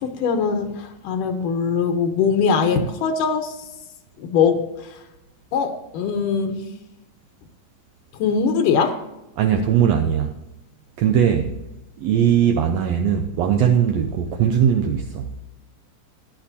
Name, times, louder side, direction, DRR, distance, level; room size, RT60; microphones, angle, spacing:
voice 1, 0.0-3.5 4.2-4.9 5.5-6.6 8.1-9.0, left 6 dB, 80° left, 2.5 m, -21 dB
voice 2, 9.4-10.3 11.0-11.5 12.0-15.3, right 8 dB, 80° right, 1.5 m, -19 dB
15.5 x 11.0 x 2.7 m
omnidirectional pair, 3.8 m